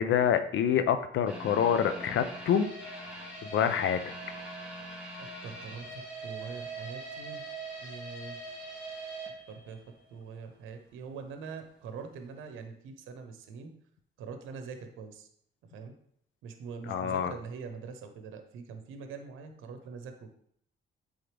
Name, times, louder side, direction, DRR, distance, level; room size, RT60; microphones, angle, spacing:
voice 1, 0.0-2.7 3.4-4.0 16.9-17.3, left 8 dB, 75° left, 10 dB, 0.7 m, -26 dB
sound 1, 1.3-10.3 10.6-10.7 11.2-11.3, right 2 dB, 5° right, 2.4 m, -42 dB
voice 2, 5.2-7.4 7.8-8.4 9.5-9.8 10.1-13.7 14.2-15.3 15.7-15.9 16.4-20.4, right 5 dB, 90° right, 6 dB, 0.9 m, -43 dB
7.9 x 3.7 x 3.4 m, 0.67 s
cardioid pair, 90°, 20 cm